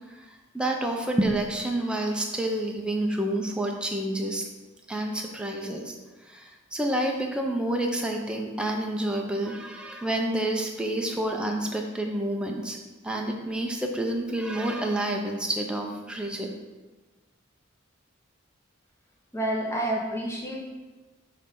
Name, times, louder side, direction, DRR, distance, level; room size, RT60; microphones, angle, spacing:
voice 1, 0.1-4.4 4.9-5.9 6.2-12.8 13.0-16.5, right 1 dB, 5° right, 1 dB, 0.5 m, -29 dB
voice 2, 19.3-20.6, right 1 dB, 15° left, -2 dB, 0.9 m, -28 dB
6.0 x 3.2 x 5.2 m, 1.2 s
head